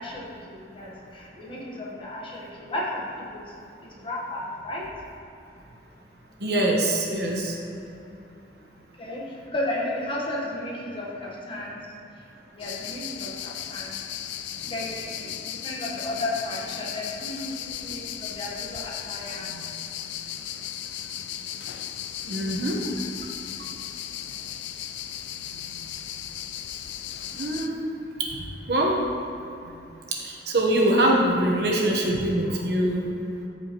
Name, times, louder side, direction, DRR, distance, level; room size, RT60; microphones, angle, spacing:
voice 1, 0.0-3.5 3.8-4.8 9.0-12.3 12.5-13.9 14.6-19.5 24.4-24.5, left 1 dB, 30° left, -4 dB, 1.3 m, -34 dB
voice 2, 6.4-7.6 19.5-19.6 22.2-22.8 25.7-25.8 27.3-27.9 28.2-28.3 28.7-28.9 30.2-33.1, right 1 dB, 60° right, -1 dB, 1.2 m, -23 dB
sound 1, 12.6-27.7, left 10 dB, 85° left, 0.4 m, -36 dB
13.5 x 4.9 x 3.1 m, 2.8 s
head